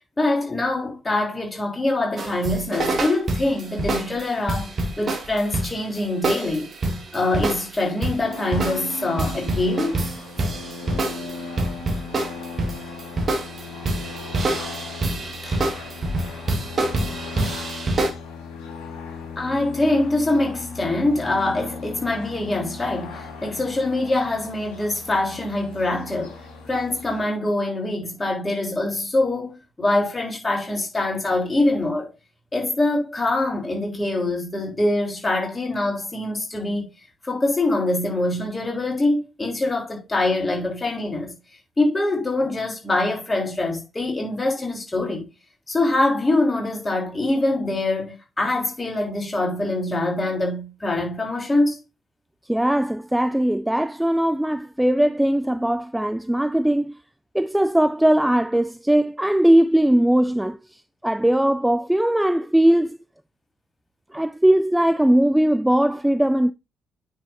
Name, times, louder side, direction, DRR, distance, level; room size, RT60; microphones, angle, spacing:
voice 1, 0.2-6.7 7.1-10.0 15.4-15.7 19.4-26.3 26.7-32.1 32.5-36.9 37.2-41.3 41.8-45.2 45.7-51.8, left 2 dB, 20° left, 3.5 m, -24 dB
sound 1, 2.2-18.1, right 2 dB, 40° right, 1.8 m, -27 dB
sound 2, 8.2-27.2, left 4 dB, 65° left, 2.0 m, -37 dB
voice 2, 52.5-57.0 57.3-63.0 64.1-66.5, right 1 dB, 5° right, 0.3 m, -20 dB
9.4 x 5.8 x 2.7 m
figure-of-eight pair, 45°, 0 cm